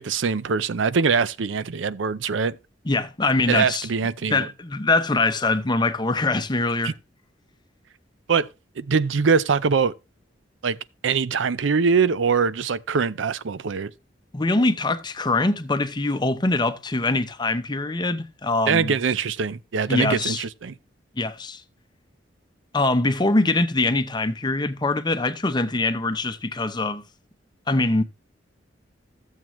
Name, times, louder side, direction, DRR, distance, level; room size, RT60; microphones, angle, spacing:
voice 1, 0.0-2.6 3.5-4.5 6.8-6.9 8.3-8.5 8.8-9.9 10.6-10.8 11.0-13.9 18.7-20.7, right 5 dB, 90° right, 0.5 m, -23 dB
voice 2, 2.9-3.9 4.2-6.9 14.3-18.9 19.9-20.4 21.2-21.6 22.7-27.0 27.7-28.0, left 2 dB, 25° left, 0.7 m, -23 dB
14.0 x 7.4 x 3.1 m
head